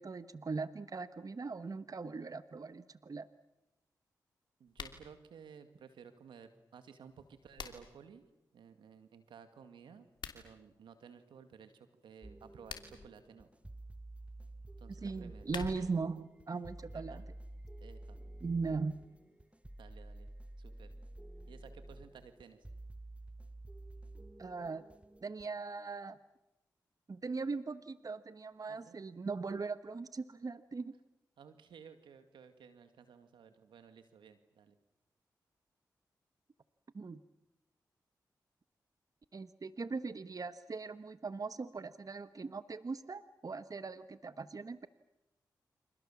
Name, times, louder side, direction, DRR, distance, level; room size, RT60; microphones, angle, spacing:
voice 1, 0.0-3.3 15.0-17.2 18.4-19.0 24.4-24.8 25.2-26.2 27.1-30.9 36.9-37.2 39.3-44.9, right 4 dB, 50° right, 12 dB, 1.2 m, -40 dB
voice 2, 4.6-8.3 8.5-10.1 10.3-13.5 14.8-15.5 16.9-17.3 17.8-18.2 19.8-20.3 20.6-20.9 21.5-22.7 28.7-29.0 31.4-34.8, right 7 dB, 90° right, 9 dB, 2.1 m, -56 dB
sound 1, 4.7-5.0 7.1-8.0 10.1-10.4 12.5-13.1 15.1-16.1, left 6 dB, 75° left, 2.9 m, -46 dB
sound 2, 12.2-25.5, right 1 dB, 15° right, 1.4 m, -51 dB
29.5 x 26.0 x 7.3 m, 0.95 s
supercardioid pair, 40°, 8 cm